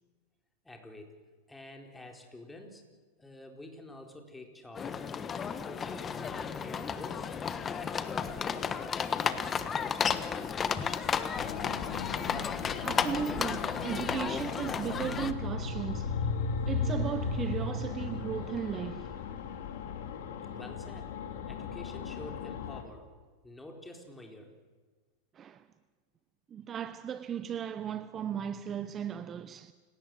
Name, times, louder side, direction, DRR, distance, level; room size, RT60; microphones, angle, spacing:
voice 1, 0.6-1.2 1.5-2.8 3.2-5.1 5.5-7.3 7.8-8.8 9.3-11.2 20.5-21.2 21.5-23.1 23.4-24.6, left 1 dB, 10° left, 4.2 m, -48 dB
sound 1, 4.7-15.3, left 6 dB, 25° left, 1.3 m, -33 dB
sound 2, 11.3-22.8, left 5 dB, 70° left, 2.9 m, -36 dB
voice 2, 12.8-16.3 16.7-19.3 25.3-25.7 26.5-29.7, right 8 dB, 30° right, 0.8 m, -36 dB
28.5 x 18.0 x 7.8 m
hypercardioid pair, 110°, 0 cm